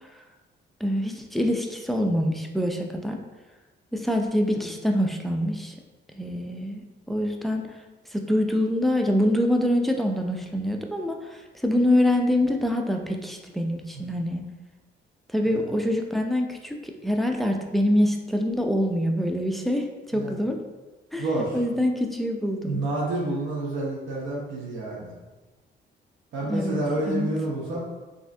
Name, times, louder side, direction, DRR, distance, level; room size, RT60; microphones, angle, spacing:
voice 1, 0.8-3.2 3.9-5.7 6.2-7.7 8.1-14.5 15.3-20.6 21.1-22.8 26.5-26.8 27.1-27.3, left 1 dB, ahead, 2 dB, 0.3 m, -25 dB
voice 2, 21.2-21.6 22.6-25.1 26.3-27.9, right 2 dB, 75° right, -3 dB, 0.9 m, -29 dB
3.2 x 2.7 x 2.6 m, 1.2 s
cardioid pair, 90°, 20 cm